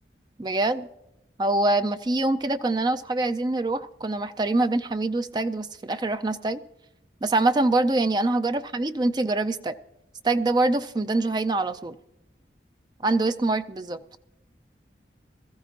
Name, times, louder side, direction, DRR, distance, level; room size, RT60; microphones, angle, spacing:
voice 1, 0.4-0.9 1.4-6.6 7.2-9.8 10.2-12.0 13.0-14.0, right 2 dB, 25° right, 10 dB, 0.4 m, -24 dB
20.5 x 14.0 x 2.9 m, 0.88 s
head